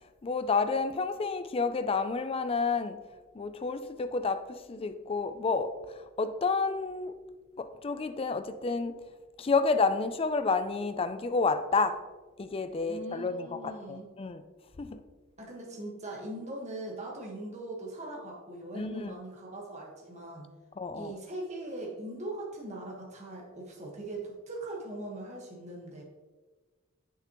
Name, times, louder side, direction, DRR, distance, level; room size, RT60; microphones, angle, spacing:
voice 1, 0.0-3.1 3.3-7.2 7.6-9.1 9.4-12.1 12.4-14.4 14.8-15.0 18.7-19.2 20.8-21.1, left 4 dB, 25° left, 0.4 m, -30 dB
voice 2, 12.9-14.1 15.4-20.5 20.9-26.0, right 1 dB, 35° right, 1.4 m, -41 dB
8.2 x 6.8 x 3.0 m
head